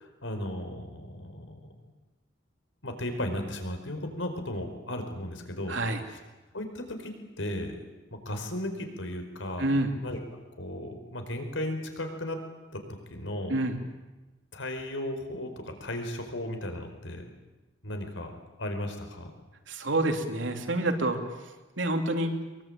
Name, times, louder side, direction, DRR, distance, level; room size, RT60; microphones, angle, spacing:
voice 1, 0.0-1.6 2.8-5.8 6.1-6.2 6.5-7.7 8.1-9.7 10.0-10.2 10.6-12.4 12.7-12.8 13.1-13.6 14.5-17.2 17.8-18.3 18.6-19.3, left 1 dB, 85° left, 6 dB, 4.8 m, -35 dB
voice 2, 5.7-6.0 9.6-10.0 13.5-13.8 19.7-21.2 21.8-22.3, right 1 dB, 80° right, 5 dB, 3.2 m, -27 dB
23.5 x 23.0 x 8.9 m, 1.1 s
head